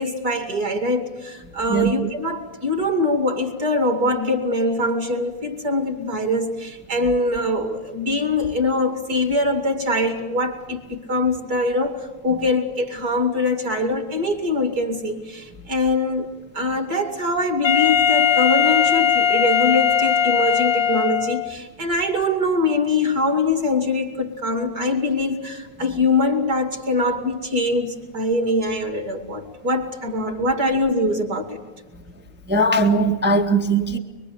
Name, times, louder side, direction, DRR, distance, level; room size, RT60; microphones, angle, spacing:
voice 1, 0.0-16.3 16.5-31.6, left 2 dB, 30° right, 2.7 m, -23 dB
Wind instrument woodwind instrument, 17.6-21.6, left 8 dB, 50° left, 1.6 m, -19 dB
voice 2, 32.5-34.0, right 2 dB, 10° right, 0.6 m, -19 dB
24.0 x 24.0 x 8.6 m
omnidirectional pair, 3.4 m